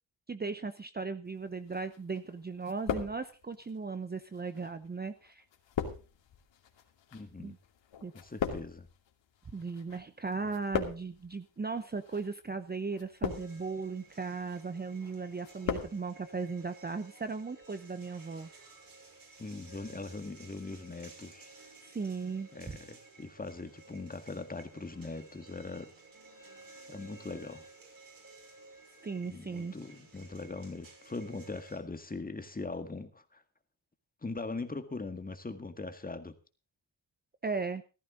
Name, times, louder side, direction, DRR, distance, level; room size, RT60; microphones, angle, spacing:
voice 1, 0.3-5.4 7.4-7.6 8.0-8.1 9.5-18.5 21.8-22.8 29.0-29.7 37.4-37.8, right 4 dB, 20° right, 10 dB, 0.8 m, -37 dB
sound 1, 1.7-2.3 2.6-3.6 4.4-10.0 10.3-11.3 12.0-12.3 12.9-13.7 14.2-14.6 15.0-16.2, left 7 dB, 75° left, 2.7 m, -38 dB
voice 2, 7.1-7.6 8.1-8.9 19.4-21.5 22.5-25.9 26.9-27.7 29.2-33.4 34.2-36.4, left 3 dB, 20° left, 8 dB, 1.9 m, -41 dB
sound 2, 13.3-31.8, right 3 dB, 45° right, 6.0 m, -55 dB
15.5 x 13.5 x 3.9 m, 0.33 s
cardioid pair, 95°, 45 cm